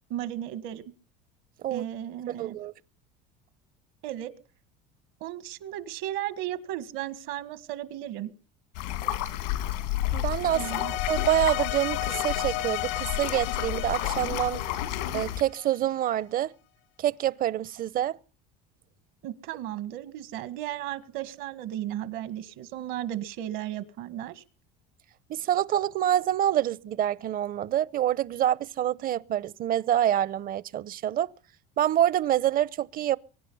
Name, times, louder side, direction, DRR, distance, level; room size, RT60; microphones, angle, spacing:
voice 1, 0.1-0.8 1.7-2.6 4.0-4.3 5.2-8.3 10.5-10.9 19.2-24.4, right 12 dB, 70° right, 1.8 m, -35 dB
voice 2, 2.4-2.7 10.1-14.6 15.1-16.5 17.0-18.2 25.3-31.3 31.8-33.2, right 11 dB, 45° right, 0.8 m, -26 dB
sound 1, 8.7-15.4, left 13 dB, 90° left, 2.4 m, -31 dB
sound 2, 10.4-15.8, left 17 dB, 70° left, 0.7 m, -34 dB
23.5 x 10.0 x 5.6 m
supercardioid pair, 105°, 21 cm